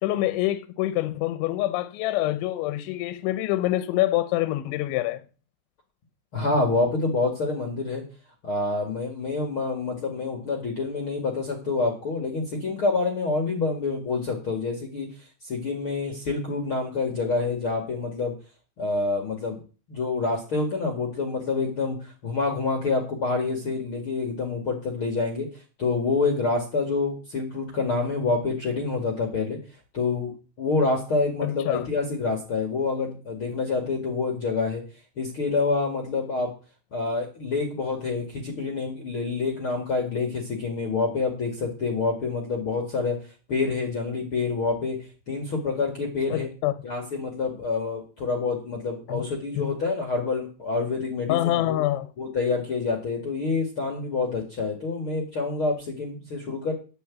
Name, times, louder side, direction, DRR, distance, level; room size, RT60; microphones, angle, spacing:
voice 1, 0.0-5.2 31.4-31.8 46.3-46.7 49.1-49.3 49.6-49.8 51.3-52.1, left 15 dB, 80° left, 2.9 m, -26 dB
voice 2, 6.3-8.0 8.4-15.1 15.4-18.3 18.8-19.6 19.9-25.5 25.8-29.6 29.9-30.3 30.6-34.8 35.2-36.5 36.9-43.2 43.5-45.0 45.3-46.5 46.8-51.8 52.2-56.7, left 3 dB, 55° left, 1.5 m, -27 dB
10.5 x 6.8 x 8.4 m
omnidirectional pair, 5.7 m